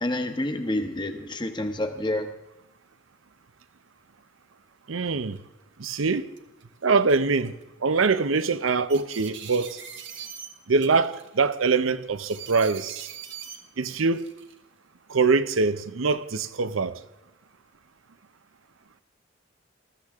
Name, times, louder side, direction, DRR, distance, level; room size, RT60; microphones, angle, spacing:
voice 1, 0.0-2.3, left 1 dB, 25° left, 1.1 m, -28 dB
voice 2, 4.9-5.4 5.8-6.3 6.8-7.5 7.8-9.8 10.7-13.1 13.8-14.3 15.1-17.0, right 4 dB, 90° right, 0.7 m, -23 dB
sound 1, 5.4-5.5 6.1-6.6 7.4-7.6 8.0-8.2 8.9-10.5 10.8-11.4 12.3-13.6 14.1-14.6, right 8 dB, 65° right, 1.4 m, -41 dB
20.5 x 14.5 x 3.6 m
head